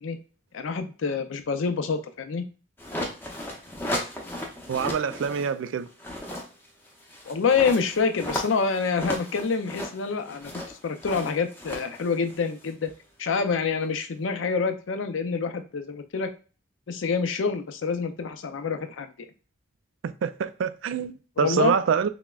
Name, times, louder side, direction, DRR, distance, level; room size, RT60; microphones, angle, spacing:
voice 1, 0.5-2.4 7.3-12.9 13.2-16.3 16.9-19.1 21.4-21.8, left 5 dB, 80° left, 0.5 m, -27 dB
sound 1, 2.8-5.5 5.9-12.9, left 1 dB, 10° left, 0.6 m, -35 dB
voice 2, 4.7-5.9 20.0-22.1, right 7 dB, 80° right, 0.3 m, -26 dB
5.8 x 2.1 x 2.3 m
head